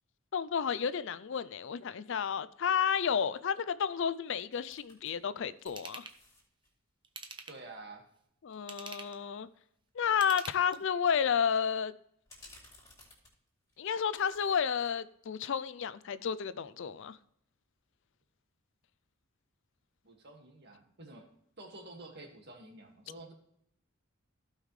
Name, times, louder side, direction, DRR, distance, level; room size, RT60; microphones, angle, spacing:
voice 1, 0.3-6.0 8.4-9.5 10.0-11.9 13.8-17.2, left 7 dB, 60° left, 0.4 m, -31 dB
sound 1, 4.5-5.1 5.5-6.7 9.4-9.5 9.9-10.1 12.3-13.8 14.1-14.9 15.3-15.4, left 2 dB, 15° left, 3.2 m, -58 dB
Ratchet pawl / Tools, 5.7-6.2 7.0-7.7 8.5-9.2 10.1-11.0 11.5-11.6, right 4 dB, 25° right, 0.8 m, -46 dB
voice 2, 7.5-8.0 20.0-21.3 21.6-23.3, right 2 dB, 50° right, 1.9 m, -49 dB
15.5 x 5.6 x 3.2 m
head